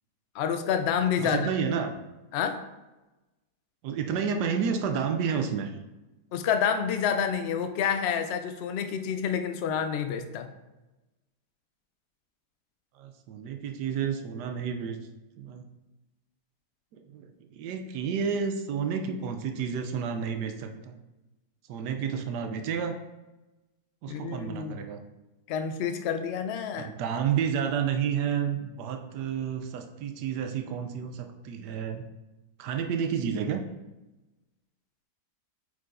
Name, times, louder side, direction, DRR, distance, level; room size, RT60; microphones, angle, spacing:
voice 1, 0.3-1.5 2.3-2.6 6.3-10.5 24.1-24.8 25.5-26.9, left 7 dB, 80° left, 7 dB, 0.5 m, -28 dB
voice 2, 1.2-2.0 3.8-5.7 13.0-15.0 15.4-15.7 16.9-20.9 21.7-23.0 24.0-25.0 26.7-32.0 32.6-33.6, right 7 dB, 90° right, 6 dB, 1.2 m, -30 dB
8.4 x 4.7 x 2.6 m, 1.0 s
omnidirectional pair, 1.7 m